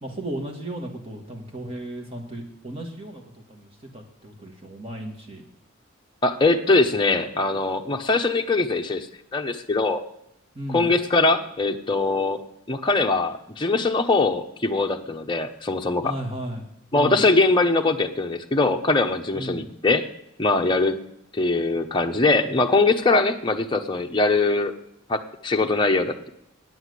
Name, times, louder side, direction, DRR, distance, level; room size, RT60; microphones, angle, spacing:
voice 1, 0.0-5.4 10.5-10.9 16.0-16.7 16.9-17.3 19.3-19.8, right 1 dB, 25° right, 2 dB, 1.9 m, -35 dB
voice 2, 6.2-9.1 9.3-10.0 10.7-12.4 12.7-16.1 16.9-20.1 20.4-21.0 21.3-24.7 25.1-26.3, left 3 dB, 20° left, 3 dB, 0.8 m, -22 dB
9.3 x 7.9 x 8.1 m, 0.78 s
head